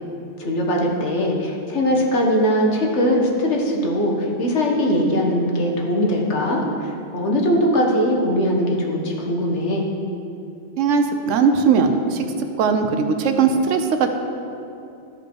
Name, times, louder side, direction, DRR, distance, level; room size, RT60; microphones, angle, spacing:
voice 1, 0.4-9.9, equal, 70° left, -1 dB, 1.6 m, -21 dB
voice 2, 10.8-12.3 12.6-14.1, right 5 dB, 90° right, 6 dB, 1.0 m, -19 dB
13.0 x 5.3 x 4.5 m, 2.6 s
omnidirectional pair, 1.2 m